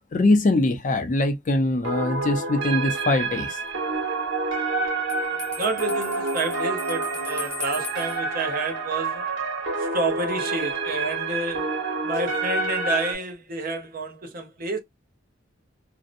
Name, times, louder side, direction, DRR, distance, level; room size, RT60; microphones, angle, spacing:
voice 1, 0.1-3.6, left 2 dB, 40° left, 0.4 m, -22 dB
sound 1, 1.8-13.1, right 3 dB, 85° right, 1.2 m, -28 dB
Bell, 5.1-8.2, left 3 dB, 5° left, 0.8 m, -37 dB
voice 2, 5.4-9.3 9.8-11.8 12.0-14.8, right 3 dB, 45° right, 0.6 m, -29 dB
2.6 x 2.0 x 2.4 m
head